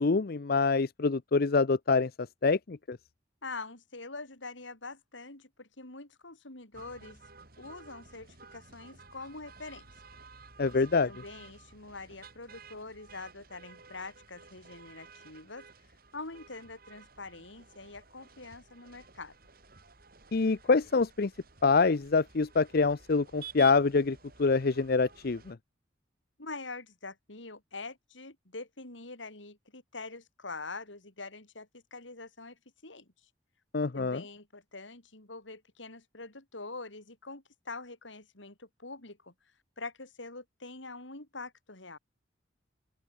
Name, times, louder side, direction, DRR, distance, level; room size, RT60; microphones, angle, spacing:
voice 1, 0.0-3.0 10.6-11.1 20.3-21.3 21.6-25.6 33.7-34.2, left 4 dB, 55° left, 0.6 m, -26 dB
voice 2, 3.4-7.2 7.6-9.9 10.7-19.4 26.4-33.3 33.9-39.3 39.8-42.0, left 3 dB, 85° left, 5.0 m, -45 dB
sound 1, 6.7-25.5, right 5 dB, 55° right, 7.5 m, -53 dB
open air
head